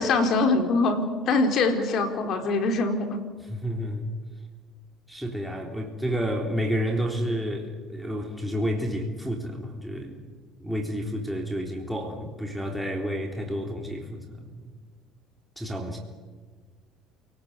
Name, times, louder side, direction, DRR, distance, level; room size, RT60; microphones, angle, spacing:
voice 1, 0.0-3.1, left 3 dB, 50° left, 5 dB, 4.3 m, -23 dB
voice 2, 3.4-4.1 5.1-10.2 10.6-14.8 15.6-16.0, equal, ahead, 0 dB, 3.7 m, -30 dB
28.5 x 19.0 x 8.4 m, 1.5 s
cardioid pair, 115°, 0 cm